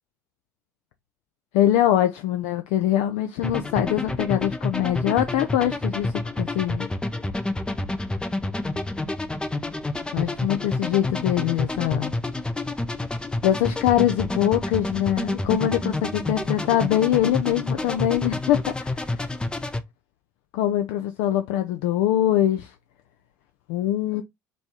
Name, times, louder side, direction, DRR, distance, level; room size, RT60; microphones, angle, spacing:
voice 1, 1.5-6.9 10.1-12.1 13.4-19.3 20.5-22.7 23.7-24.2, left 12 dB, 60° left, 0.4 m, -23 dB
sound 1, 3.4-19.8, left 2 dB, 10° left, 0.5 m, -29 dB
4.1 x 3.3 x 2.8 m
figure-of-eight pair, 60°, 9 cm